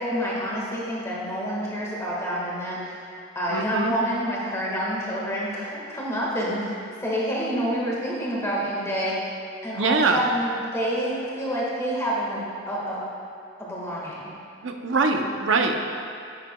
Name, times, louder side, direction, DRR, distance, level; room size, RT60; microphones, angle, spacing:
voice 1, 0.0-3.0 3.3-6.7 7.0-9.1 9.6-13.0 13.6-14.3, equal, 15° left, -6 dB, 1.7 m, -28 dB
voice 2, 3.5-3.9 9.8-10.2 14.6-16.0, right 3 dB, 75° right, 4 dB, 0.7 m, -23 dB
9.9 x 8.8 x 2.3 m, 2.5 s
head